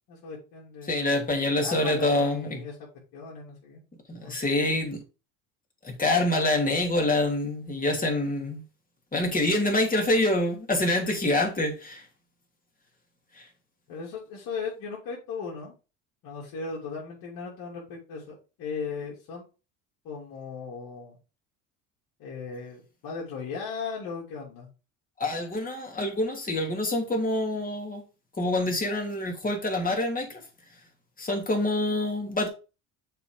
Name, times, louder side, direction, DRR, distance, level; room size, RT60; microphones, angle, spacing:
voice 1, 0.1-1.3 1.6-2.7 3.1-3.8 4.2-4.5 13.9-15.7 16.2-19.5 20.0-21.2 22.2-24.7, left 5 dB, 65° left, 3.1 m, -37 dB
voice 2, 0.8-2.6 4.1-5.0 5.8-8.6 9.1-12.0 13.4-13.5 25.2-28.0 28.4-30.4 31.2-32.5, left 1 dB, 20° left, 3.0 m, -26 dB
6.8 x 4.4 x 5.1 m
supercardioid pair, 100°, 37 cm